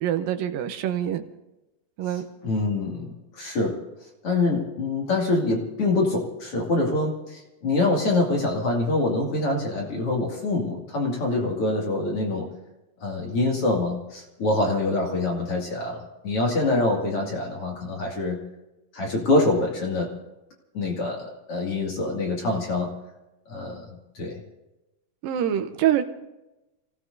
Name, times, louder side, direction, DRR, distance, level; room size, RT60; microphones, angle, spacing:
voice 1, 0.0-1.2 2.0-2.2 25.2-26.0, right 10 dB, 85° right, 8 dB, 2.6 m, -25 dB
voice 2, 2.1-3.8 4.2-12.5 13.0-18.4 18.9-20.1 20.7-22.9 23.5-23.9 24.1-24.4, left 2 dB, 45° left, -2 dB, 2.9 m, -25 dB
29.5 x 17.0 x 2.7 m, 0.99 s
omnidirectional pair, 4.0 m